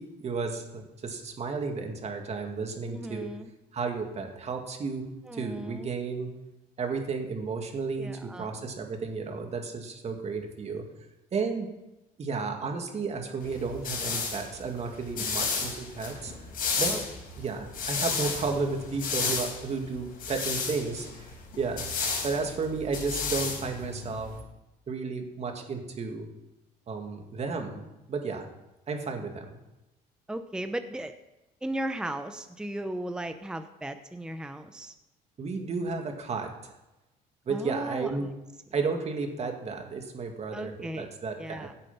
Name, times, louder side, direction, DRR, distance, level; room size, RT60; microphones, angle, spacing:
voice 1, 0.0-3.3 3.7-5.0 5.3-6.3 6.8-10.8 11.3-11.7 12.2-16.3 16.8-16.9 17.4-24.3 24.9-26.3 26.9-27.8 28.1-28.5 28.9-29.6 35.4-36.7 37.5-38.3 38.7-41.7, right 4 dB, 40° right, 4 dB, 2.2 m, -33 dB
voice 2, 2.9-3.5 5.3-5.9 8.0-8.7 16.9-17.0 30.3-31.1 31.6-34.9 37.5-38.1 40.5-41.1 41.4-41.7, right 1 dB, 5° right, 9 dB, 0.7 m, -36 dB
sound 1, 13.4-24.4, left 5 dB, 55° left, 5.0 m, -33 dB
16.0 x 8.2 x 5.6 m, 0.98 s
cardioid pair, 110°, 17 cm